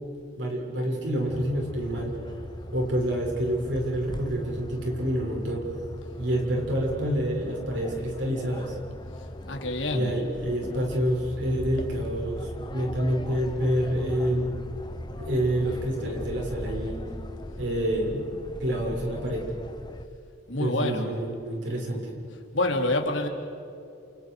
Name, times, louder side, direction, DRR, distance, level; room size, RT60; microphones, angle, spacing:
voice 1, 0.3-2.3 2.7-5.7 6.2-8.8 9.9-14.5 15.2-17.0 17.6-18.3 18.6-19.4 20.6-22.2, equal, 70° right, -1 dB, 7.0 m, -28 dB
sound 1, 1.3-20.1, left 1 dB, 25° left, 1.0 m, -39 dB
voice 2, 9.2-10.1 20.5-21.1 22.5-23.3, left 2 dB, 85° left, 3 dB, 3.5 m, -27 dB
29.5 x 29.0 x 5.1 m, 2.7 s
head